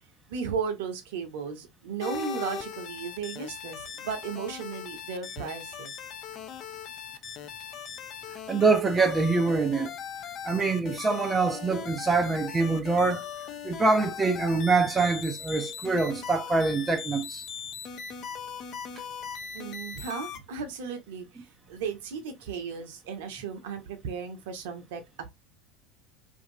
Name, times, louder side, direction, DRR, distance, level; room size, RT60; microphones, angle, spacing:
voice 1, 0.3-5.9 19.5-25.3, right 6 dB, 60° right, 0.6 m, -35 dB
sound 1, 2.0-20.4, left 7 dB, 40° left, 0.4 m, -39 dB
voice 2, 8.5-9.9 10.4-13.2 13.6-17.4, right 3 dB, 20° right, 0.4 m, -25 dB
2.6 x 2.4 x 2.6 m
figure-of-eight pair, 75°, 0 cm